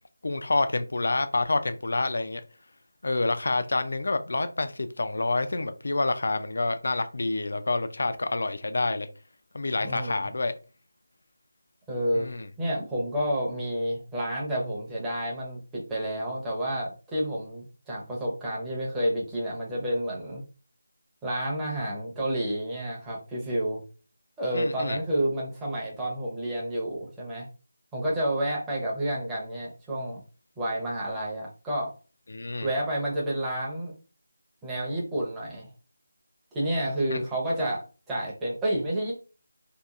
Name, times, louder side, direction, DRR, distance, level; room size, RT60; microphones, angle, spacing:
voice 1, 0.2-2.4 3.0-9.1 9.5-10.5 12.1-12.5 24.5-25.0 32.3-32.7 37.1-37.2, left 2 dB, 60° left, 10 dB, 0.4 m, -28 dB
voice 2, 9.8-10.3 11.9-12.3 12.6-20.4 21.2-23.8 24.4-27.5 27.9-30.2 30.6-31.9 32.6-33.9 34.6-35.7 36.5-39.1, right 1 dB, 5° right, -6 dB, 0.7 m, -30 dB
2.8 x 2.2 x 2.4 m, 0.35 s
figure-of-eight pair, 170°, 0 cm